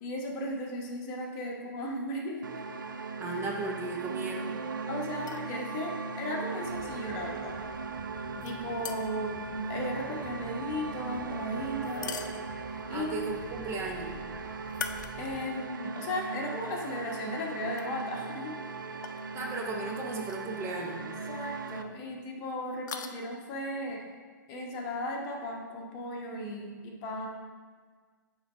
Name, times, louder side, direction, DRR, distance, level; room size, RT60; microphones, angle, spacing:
voice 1, 0.0-2.4 4.9-7.5 8.4-12.2 12.9-13.2 15.2-18.5 21.3-24.0 24.5-27.3, left 1 dB, 40° left, 0 dB, 1.1 m, -36 dB
sound 1, 2.4-21.8, right 4 dB, 85° right, 0.4 m, -39 dB
voice 2, 3.2-4.6 12.9-14.2 19.3-21.0, right 3 dB, 25° right, 0 dB, 0.9 m, -35 dB
sound 2, 5.2-5.5 8.4-9.3 11.8-12.8 14.7-15.6 16.1-16.2 17.7-17.9 19.0-19.2 20.2-20.5 20.8-20.9 22.7-23.1, left 6 dB, 65° left, 0.5 m, -41 dB
sound 3, 6.6-15.4, right 2 dB, 50° right, 1.0 m, -50 dB
7.8 x 3.2 x 4.9 m, 1.5 s
hypercardioid pair, 115°, 11 cm